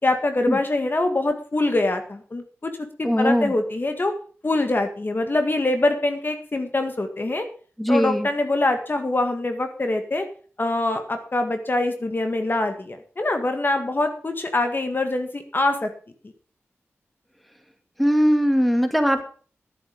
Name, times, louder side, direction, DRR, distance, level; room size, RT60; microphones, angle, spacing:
voice 1, 0.0-2.7 3.0-4.1 4.4-7.5 7.9-10.3 10.6-15.9, left 2 dB, 45° left, 6 dB, 1.8 m, -24 dB
voice 2, 3.0-3.5 7.8-8.3 18.0-19.2, equal, ahead, 7 dB, 2.3 m, -20 dB
11.0 x 9.8 x 5.2 m, 0.42 s
cardioid pair, 50°, 5 cm